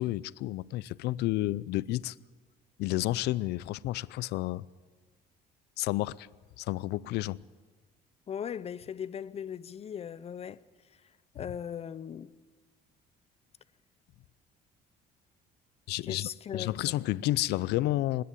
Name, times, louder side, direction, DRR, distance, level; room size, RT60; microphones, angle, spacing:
voice 1, 0.0-2.2 2.8-4.6 5.8-6.3 6.6-7.4 15.9-18.2, left 16 dB, 80° left, 0.5 m, -31 dB
voice 2, 8.3-10.6 11.3-12.3 16.0-17.0, left 8 dB, 35° left, 0.7 m, -38 dB
26.0 x 10.5 x 9.8 m
cardioid pair, 110°, 17 cm